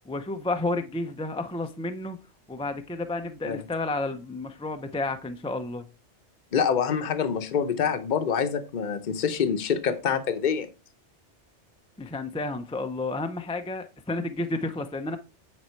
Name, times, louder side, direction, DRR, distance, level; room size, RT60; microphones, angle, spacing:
voice 1, 0.1-2.2 2.5-5.8 12.0-15.2, left 2 dB, 10° left, 0.4 m, -31 dB
voice 2, 6.5-10.7, left 7 dB, 45° left, 0.9 m, -26 dB
9.1 x 4.2 x 4.5 m
omnidirectional pair, 1.2 m